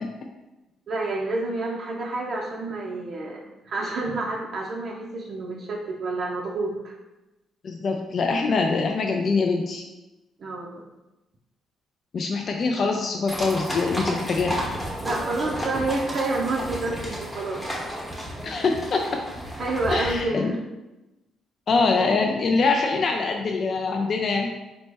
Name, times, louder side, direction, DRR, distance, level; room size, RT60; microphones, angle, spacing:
voice 1, 0.9-6.9 10.4-10.9 15.0-17.7 19.6-20.6, right 2 dB, 55° right, -3 dB, 0.5 m, -29 dB
voice 2, 7.6-9.8 12.1-14.5 18.4-19.2 19.9-20.5 21.7-24.5, left 4 dB, 50° left, 3 dB, 0.3 m, -24 dB
sound 1, 13.3-20.2, equal, 10° left, 0.9 m, -32 dB
4.1 x 2.0 x 3.3 m, 1.0 s
cardioid pair, 90°, 0 cm